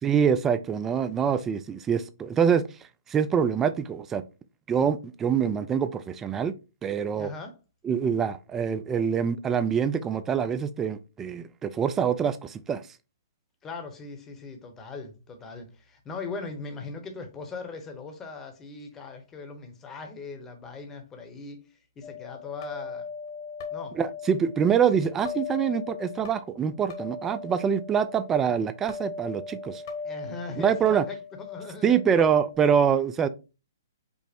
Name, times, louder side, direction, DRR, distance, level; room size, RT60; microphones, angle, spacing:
voice 1, 0.0-2.6 3.1-4.2 4.7-6.5 6.8-7.3 7.8-12.8 23.9-29.8 30.6-31.0 31.8-33.3, right 7 dB, 15° right, 0.4 m, -25 dB
voice 2, 7.2-7.6 13.6-23.1 23.7-24.0 30.0-32.0, left 4 dB, 15° left, 0.9 m, -40 dB
sound 1, 22.0-32.6, left 6 dB, 50° left, 1.3 m, -39 dB
5.2 x 2.1 x 4.4 m
hypercardioid pair, 130°, 2 cm